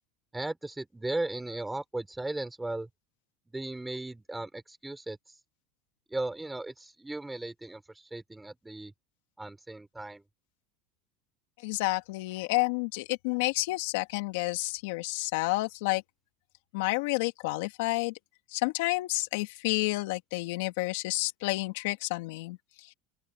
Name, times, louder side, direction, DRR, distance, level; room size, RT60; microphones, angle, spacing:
voice 1, 0.3-2.9 3.5-5.2 6.1-7.8 8.1-8.9 9.4-10.2, right 2 dB, 5° right, 5.3 m, -36 dB
voice 2, 11.6-16.0 16.7-18.1 18.5-22.9, left 22 dB, 75° left, 2.9 m, -30 dB
open air
supercardioid pair, 135°, 0 cm